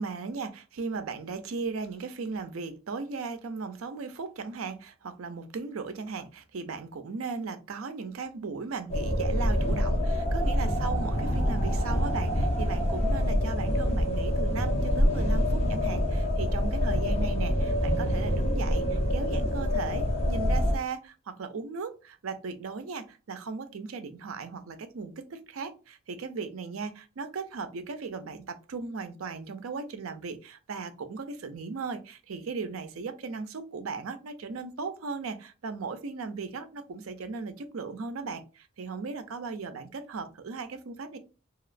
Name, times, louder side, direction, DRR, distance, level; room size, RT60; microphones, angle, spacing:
voice 1, 0.0-41.2, right 4 dB, 85° right, 10 dB, 0.5 m, -37 dB
sound 1, 8.9-20.8, equal, 30° left, 0.8 m, -26 dB
3.0 x 2.8 x 2.4 m, 0.33 s
head